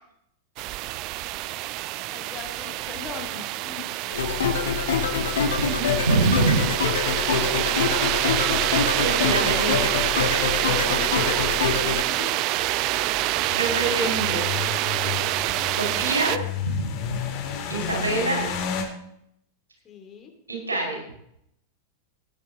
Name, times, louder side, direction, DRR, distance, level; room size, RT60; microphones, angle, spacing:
sound 1, 0.6-16.4, right 16 dB, 40° right, 0.4 m, -26 dB
voice 1, 2.1-4.7 9.1-12.4 17.5-18.2 19.9-20.3, left 6 dB, 25° left, 3 dB, 2.4 m, -41 dB
sound 2, 4.1-12.0, left 6 dB, 65° left, 1.5 m, -25 dB
voice 2, 5.6-6.6 9.0-9.7 13.1-14.4 15.7-17.2 17.7-18.4 20.5-21.0, right 3 dB, 75° right, 1 dB, 4.7 m, -26 dB
sound 3, 12.6-18.8, left 7 dB, 40° left, 2.1 m, -32 dB
16.5 x 9.6 x 3.7 m, 0.74 s
figure-of-eight pair, 90°, 0 cm